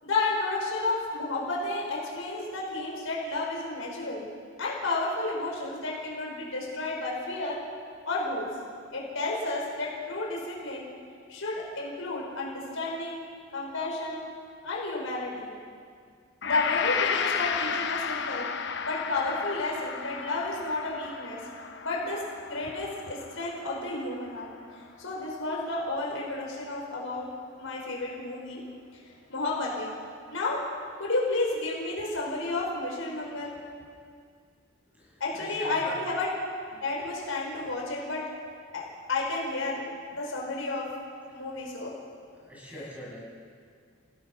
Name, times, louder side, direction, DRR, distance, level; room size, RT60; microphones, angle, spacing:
voice 1, 0.0-4.3 4.6-7.6 8.1-8.5 8.9-10.9 11.3-13.2 13.5-14.2 14.6-15.5 16.4-18.5 18.8-21.4 21.8-22.2 22.5-24.5 25.0-27.3 27.6-28.6 29.3-29.9 30.3-30.6 31.0-33.6 35.2-36.3 36.7-38.2 38.7-40.9 41.3-41.9, left 2 dB, 85° left, -3 dB, 5.2 m, -31 dB
Gong, 16.4-24.8 25.2-25.3, left 6 dB, 60° left, 1.0 m, -33 dB
voice 2, 34.9-36.0 42.3-43.2, equal, 10° right, -5 dB, 7.3 m, -44 dB
27.5 x 17.0 x 5.8 m, 2.1 s
head